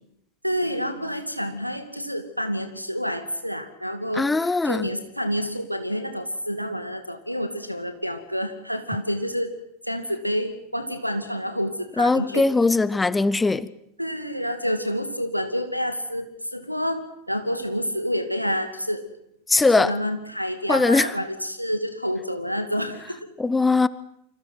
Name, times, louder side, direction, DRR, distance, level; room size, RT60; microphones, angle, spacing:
voice 1, 0.4-4.3 4.6-9.6 9.8-12.5 14.0-19.1 19.6-23.3, equal, 90° right, 2.4 m, -28 dB
voice 2, 4.2-4.9 12.0-13.7 19.5-19.9 20.7-21.1 23.4-23.9, left 3 dB, 10° left, 0.9 m, -20 dB
29.0 x 25.5 x 6.0 m
figure-of-eight pair, 90°, 0 cm